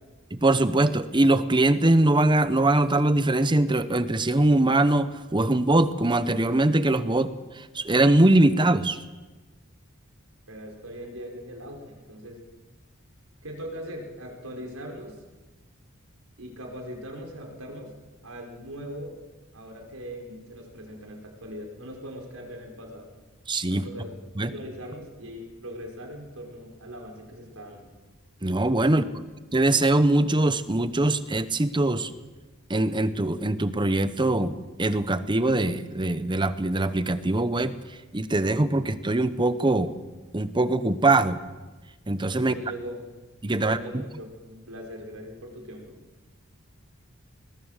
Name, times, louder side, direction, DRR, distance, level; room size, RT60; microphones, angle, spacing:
voice 1, 0.4-9.0 23.5-23.9 24.4-24.5 28.4-29.1 29.5-32.1 32.7-37.8 38.1-40.0 40.3-41.4 42.1-42.5 43.4-44.0, right 2 dB, 20° right, 13 dB, 0.9 m, -22 dB
voice 2, 10.5-12.4 13.4-15.2 16.4-17.9 18.2-19.2 19.5-23.1 23.7-27.8 42.4-43.0 43.6-46.0, equal, 85° right, 1 dB, 5.0 m, -40 dB
21.5 x 20.0 x 6.6 m, 1.2 s
head